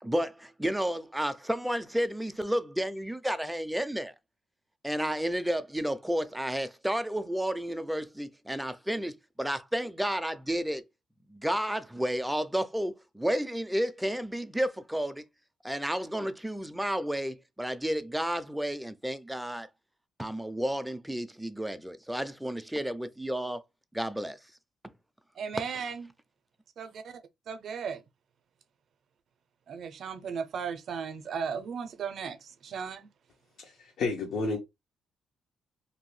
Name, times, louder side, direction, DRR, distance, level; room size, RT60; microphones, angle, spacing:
voice 1, 0.0-4.1 4.8-10.8 11.3-15.2 15.6-19.7 20.2-23.6 23.9-24.4, equal, 5° right, 0.4 m, -31 dB
voice 2, 25.4-26.1 26.8-27.1 27.5-28.0 29.7-33.1, right 6 dB, 60° right, 0.5 m, -36 dB
voice 3, 33.6-34.6, left 3 dB, 70° left, 0.7 m, -31 dB
2.6 x 2.2 x 3.1 m
cardioid pair, 90°, 0 cm